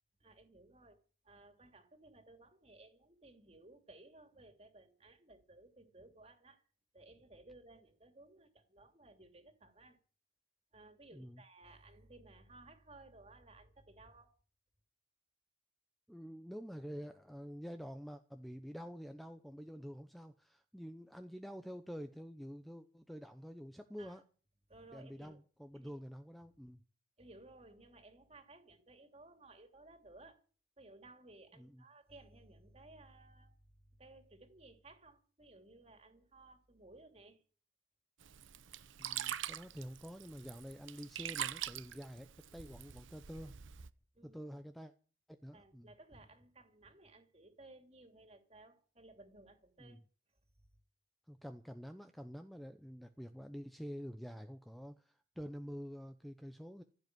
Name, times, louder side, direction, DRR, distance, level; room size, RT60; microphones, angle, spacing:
voice 1, 0.2-1.0 1.2-6.7 6.9-10.0 10.7-14.3 24.0-24.2 24.7-25.4 25.7-25.9 27.2-30.4 30.8-33.5 34.0-37.4 44.1-44.4 45.5-50.0, right 2 dB, 35° right, 2.8 m, -59 dB
voice 2, 16.1-24.2 24.9-26.8 31.5-31.8 39.0-43.5 44.2-44.9 45.3-45.9 49.8-50.0 51.3-56.8, equal, ahead, 0.8 m, -48 dB
Sink (filling or washing), 38.2-43.9, right 10 dB, 90° right, 0.8 m, -44 dB
15.5 x 7.9 x 9.5 m
head